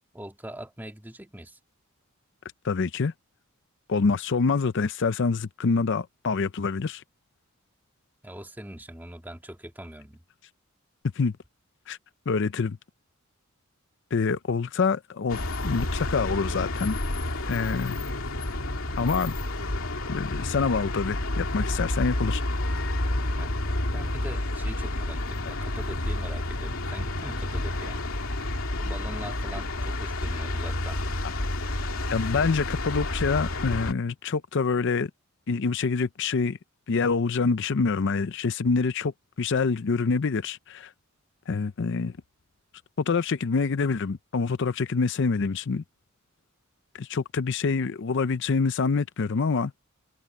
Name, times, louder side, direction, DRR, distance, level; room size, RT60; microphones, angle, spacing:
voice 1, 0.1-1.6 8.2-10.2 23.4-23.5 23.9-28.0 28.8-31.0, right 1 dB, 10° right, 2.3 m, -42 dB
voice 2, 2.6-3.1 3.9-7.0 11.1-11.3 11.9-12.0 12.3-12.8 14.1-17.0 17.5-18.0 19.0-19.3 20.1-22.4 32.1-35.1 35.5-36.6 36.9-39.1 39.4-40.9 41.5-42.1 43.0-45.8 46.9-49.8, left 4 dB, 60° left, 0.5 m, -26 dB
sound 1, 15.3-33.9, left 1 dB, 80° left, 2.6 m, -30 dB
head